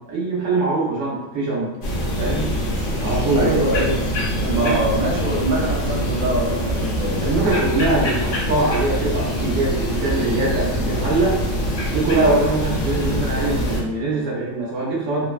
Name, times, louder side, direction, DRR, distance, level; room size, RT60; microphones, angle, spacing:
voice 1, 0.1-1.8 2.2-2.5 3.0-3.5 4.6-4.8 7.2-11.4 11.9-15.3, right 2 dB, 70° right, -4 dB, 1.1 m, -22 dB
sound 1, 1.8-13.8, equal, 65° left, 1.0 m, -24 dB
voice 2, 3.3-4.0 4.4-7.2, right 2 dB, 45° right, -4 dB, 0.6 m, -23 dB
3.2 x 2.1 x 2.3 m, 1.0 s
omnidirectional pair, 1.4 m